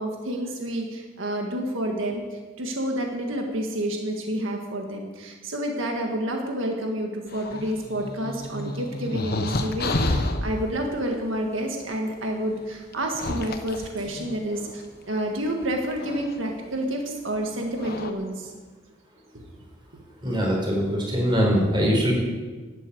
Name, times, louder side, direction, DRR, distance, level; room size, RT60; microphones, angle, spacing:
voice 1, 0.0-18.5 19.3-19.5, right 1 dB, 85° right, 2 dB, 1.8 m, -29 dB
sound 1, 7.3-10.5 11.8-11.9 12.9-14.8 15.9-16.4 17.4-17.5 17.8-18.1, left 2 dB, 50° left, 1.0 m, -30 dB
voice 2, 20.2-22.1, equal, 25° right, -2 dB, 4.5 m, -22 dB
12.5 x 8.5 x 8.5 m, 1.4 s
head